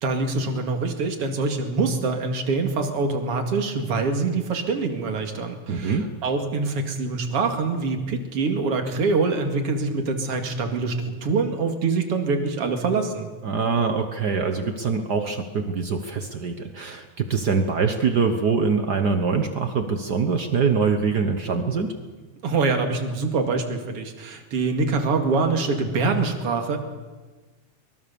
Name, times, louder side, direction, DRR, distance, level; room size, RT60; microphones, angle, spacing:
voice 1, 0.0-10.9 11.2-13.3 22.4-26.8, right 4 dB, 50° right, 4 dB, 2.9 m, -24 dB
voice 2, 5.7-6.1 13.4-21.9, right 5 dB, 65° right, 7 dB, 1.0 m, -24 dB
24.0 x 21.0 x 7.0 m, 1.3 s
omnidirectional pair, 3.5 m